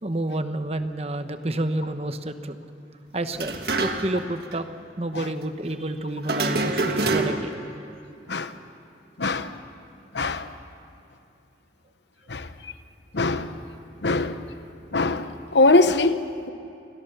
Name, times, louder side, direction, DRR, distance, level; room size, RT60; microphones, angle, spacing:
voice 1, 0.0-2.6 3.1-3.5 3.8-4.7 5.0-7.5, right 1 dB, 35° right, 1.0 m, -29 dB
sound 1, 3.3-4.3 4.5-4.6 6.2-7.6, right 3 dB, 60° right, 1.7 m, -26 dB
voice 2, 9.2-9.5 10.1-10.5 12.3-12.5 13.1-13.5 14.0-14.4 14.9-16.5, left 2 dB, 75° left, 1.0 m, -22 dB
28.5 x 21.0 x 6.9 m
head